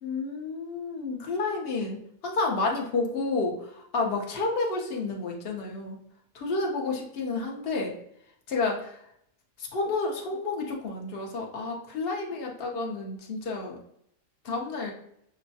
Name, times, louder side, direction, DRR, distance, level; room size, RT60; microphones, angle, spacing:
voice 1, 0.0-2.0 2.2-6.0 6.3-8.0 8.5-9.0 9.6-13.8 14.4-14.9, left 3 dB, 50° left, 0 dB, 0.8 m, -30 dB
6.2 x 2.1 x 2.7 m, 0.71 s
omnidirectional pair, 1.8 m